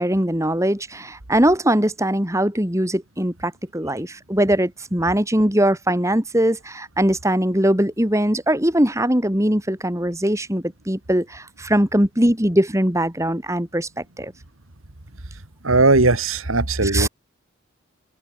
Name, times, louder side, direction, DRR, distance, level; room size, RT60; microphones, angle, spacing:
voice 1, 0.0-14.3 16.8-17.1, right 1 dB, 15° right, 2.8 m, -21 dB
voice 2, 15.6-17.1, right 3 dB, 90° right, 2.4 m, -18 dB
head